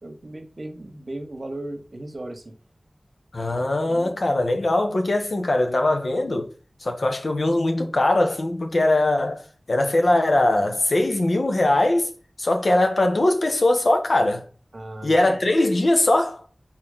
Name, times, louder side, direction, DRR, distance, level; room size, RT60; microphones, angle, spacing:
voice 1, 0.0-2.5 3.5-4.2 14.7-15.4, right 1 dB, 60° right, 1.3 m, -37 dB
voice 2, 3.3-6.5 6.8-9.4 9.7-12.1 12.4-14.4 15.0-16.4, left 1 dB, 75° left, 1.2 m, -21 dB
4.4 x 4.2 x 5.6 m
wide cardioid pair, 60°, 0 cm